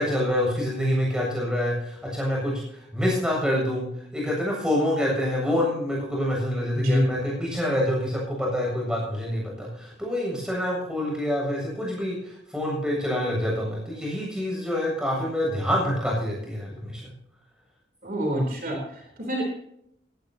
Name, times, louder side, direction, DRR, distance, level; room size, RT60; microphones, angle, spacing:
voice 1, 0.0-3.9 4.1-17.1, left 1 dB, 5° right, -2 dB, 7.5 m, -26 dB
voice 2, 6.7-7.0 18.0-19.5, equal, 50° right, 0 dB, 3.7 m, -26 dB
18.0 x 17.5 x 2.9 m, 0.76 s
head